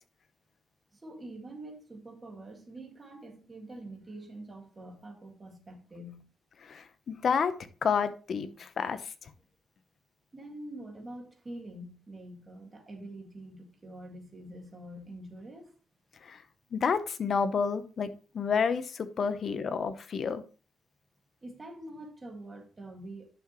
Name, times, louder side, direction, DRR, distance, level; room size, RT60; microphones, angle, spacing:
voice 1, 0.9-6.3 10.3-15.7 21.4-23.3, right 1 dB, 20° right, 2.0 m, -45 dB
voice 2, 6.6-7.5 7.8-9.0 16.3-16.4 16.7-20.4, left 6 dB, 45° left, 0.8 m, -30 dB
10.5 x 6.0 x 3.0 m
cardioid pair, 155°, 0 cm